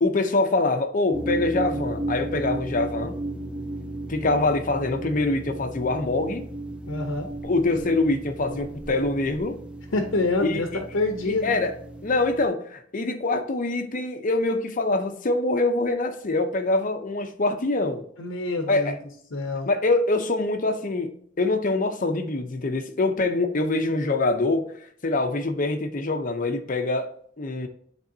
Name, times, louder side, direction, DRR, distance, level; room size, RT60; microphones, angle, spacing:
voice 1, 0.0-3.2 4.1-6.5 7.4-9.6 10.4-10.6 11.3-11.7 12.0-18.0 18.7-19.0 19.7-21.1 21.4-24.7 25.0-27.7, left 2 dB, 45° left, 0.7 m, -24 dB
sound 1, 1.1-12.5, right 2 dB, 5° right, 0.5 m, -34 dB
voice 2, 6.9-7.3 9.9-11.6 18.2-19.0 19.3-19.7, left 2 dB, 75° left, 0.8 m, -27 dB
10.0 x 3.4 x 2.7 m
head